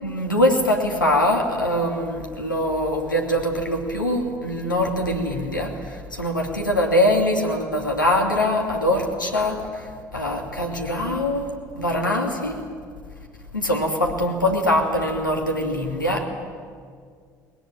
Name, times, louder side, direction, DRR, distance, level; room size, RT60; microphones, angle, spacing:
voice 1, 0.0-12.6 13.5-16.3, left 1 dB, 90° left, 2 dB, 2.7 m, -23 dB
22.0 x 21.5 x 9.1 m, 2.1 s
figure-of-eight pair, 55°, 10 cm